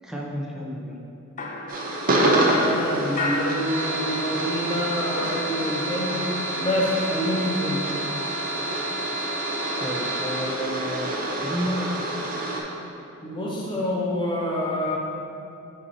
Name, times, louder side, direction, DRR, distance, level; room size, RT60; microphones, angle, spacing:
voice 1, 0.0-1.0 9.8-12.2, equal, ahead, -3 dB, 0.6 m, -31 dB
sound 1, 1.4-4.4 4.7-6.1, left 2 dB, 40° left, 0.5 m, -33 dB
sound 2, 1.7-12.6, right 1 dB, 45° right, 0.7 m, -27 dB
voice 2, 2.1-6.2 6.6-7.8 13.2-15.0, equal, 25° left, -4 dB, 1.0 m, -27 dB
8.2 x 2.9 x 4.3 m, 2.7 s
head